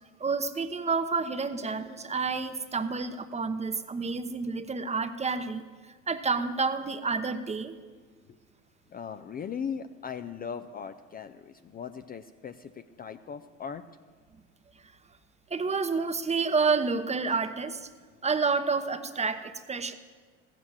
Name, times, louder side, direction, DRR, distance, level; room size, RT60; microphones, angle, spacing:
voice 1, 0.2-5.6 6.1-7.8 15.5-17.9 18.2-19.9, right 4 dB, 15° right, 11 dB, 0.9 m, -29 dB
voice 2, 8.9-13.8, left 7 dB, 25° left, 10 dB, 0.5 m, -38 dB
15.5 x 7.5 x 7.3 m, 1.5 s
hypercardioid pair, 75°, 39 cm